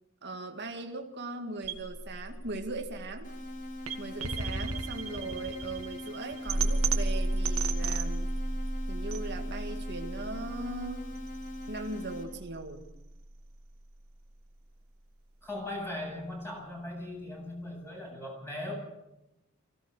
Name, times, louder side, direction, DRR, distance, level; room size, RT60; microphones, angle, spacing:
voice 1, 0.2-3.3 4.0-8.3 8.9-11.1 11.7-12.9, right 2 dB, 55° right, 3 dB, 2.2 m, -39 dB
sound 1, 1.6-13.7, right 2 dB, 75° right, 1.9 m, -33 dB
sound 2, 3.2-12.2, left 1 dB, 40° left, 3.9 m, -42 dB
voice 2, 15.4-18.7, left 1 dB, 10° left, -1 dB, 8.0 m, -39 dB
24.0 x 16.5 x 6.8 m, 0.93 s
head